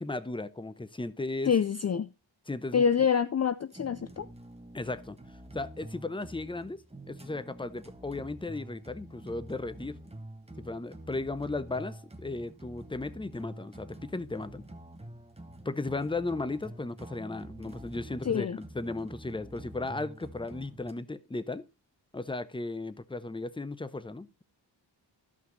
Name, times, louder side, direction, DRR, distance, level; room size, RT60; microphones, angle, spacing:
voice 1, 0.0-1.5 2.5-2.8 4.7-5.2 5.5-6.8 7.1-10.0 10.6-14.6 15.6-21.7 22.1-24.4, left 2 dB, 10° left, 0.8 m, -36 dB
voice 2, 1.5-2.1 2.7-4.3 18.2-18.6, left 7 dB, 35° left, 0.5 m, -26 dB
sound 1, 3.7-20.9, right 1 dB, 15° right, 1.4 m, -47 dB
13.0 x 5.8 x 3.9 m
cardioid pair, 60°, 46 cm